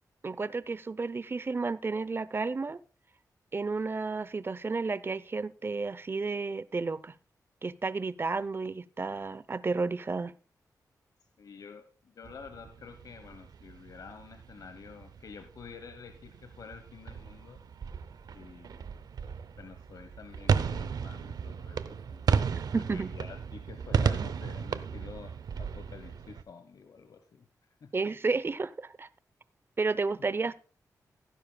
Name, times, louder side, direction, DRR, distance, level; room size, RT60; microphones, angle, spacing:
voice 1, 0.2-2.8 3.5-7.1 7.6-10.3 22.5-23.1 27.9-29.1 29.8-30.5, right 4 dB, 35° right, 16 dB, 0.6 m, -32 dB
voice 2, 11.4-17.6 18.3-18.8 19.6-22.6 22.9-27.5 27.8-27.9, left 5 dB, 65° left, 8 dB, 1.2 m, -49 dB
sound 1, 12.2-26.4, right 6 dB, 75° right, 0.7 m, -34 dB
17.0 x 10.0 x 2.3 m, 0.38 s
wide cardioid pair, 90°, 7 cm